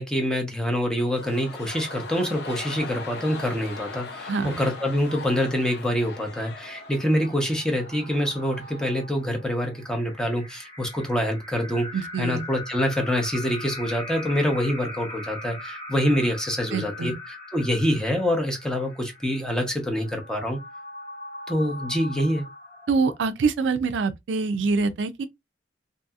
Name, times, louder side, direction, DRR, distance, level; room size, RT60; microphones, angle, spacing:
voice 1, 0.0-20.6 21.5-22.5, equal, 5° left, 0.7 m, -26 dB
sound 1, 0.9-9.0 9.3-9.4, left 4 dB, 65° left, 0.8 m, -40 dB
sound 2, 6.1-23.5, left 2 dB, 45° left, 1.3 m, -41 dB
voice 2, 11.9-12.4 16.7-17.2 22.9-25.3, right 4 dB, 85° right, 0.4 m, -25 dB
2.6 x 2.6 x 2.3 m
head